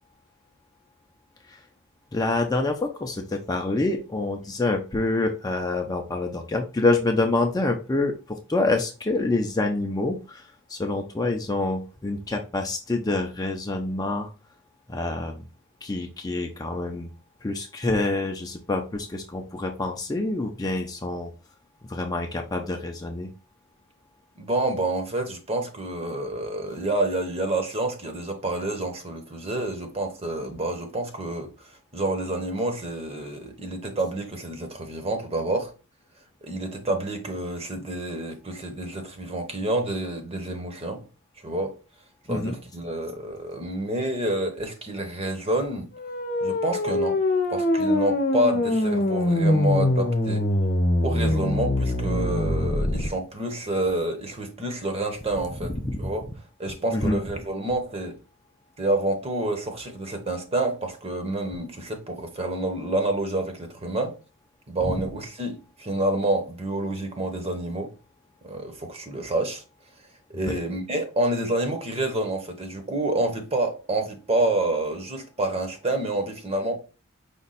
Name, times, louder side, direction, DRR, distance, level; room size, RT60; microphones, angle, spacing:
voice 1, 2.1-14.3 14.9-15.4 15.8-17.1 17.4-21.3 21.9-23.3 42.3-42.6 55.6-56.1 56.9-57.2 64.8-64.9 70.4-70.6, left 2 dB, 15° left, 0.5 m, -27 dB
voice 2, 24.4-35.7 36.4-41.0 41.4-41.7 42.3-45.9 46.4-47.2 47.5-50.5 51.0-55.7 56.0-56.3 56.6-58.2 58.8-64.2 64.7-67.9 68.4-69.6 70.3-76.8, right 2 dB, 30° right, 0.8 m, -28 dB
sound 1, 46.0-53.1, left 1 dB, 45° left, 0.9 m, -23 dB
5.1 x 2.3 x 4.0 m
head